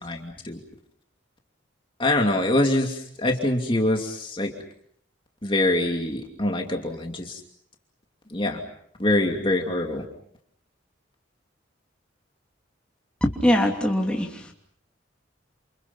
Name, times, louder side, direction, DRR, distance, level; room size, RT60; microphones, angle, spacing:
voice 1, 0.0-0.6 2.0-4.5 5.4-7.4 8.3-8.6 9.0-10.0, left 1 dB, 25° left, 2 dB, 2.7 m, -24 dB
voice 2, 13.2-14.5, equal, 5° left, 0 dB, 2.9 m, -22 dB
29.0 x 28.5 x 5.6 m, 0.64 s
head